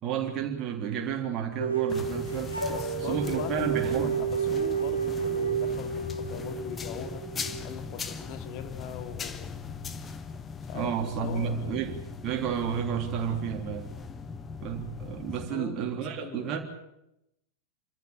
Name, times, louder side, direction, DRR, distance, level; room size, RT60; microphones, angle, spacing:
voice 1, 0.0-2.6 3.1-4.2 10.7-13.9 14.6-16.6, right 8 dB, 35° right, 3.3 m, -31 dB
sound 1, 1.6-8.5, right 6 dB, 85° left, 3.9 m, -31 dB
sound 2, 1.9-15.5, left 5 dB, 20° left, 1.3 m, -39 dB
voice 2, 2.7-7.2 7.6-9.6 10.7-10.9 11.2-11.8 15.5-16.6, left 9 dB, 45° left, 2.3 m, -41 dB
27.0 x 14.0 x 9.0 m
figure-of-eight pair, 90°, 0 cm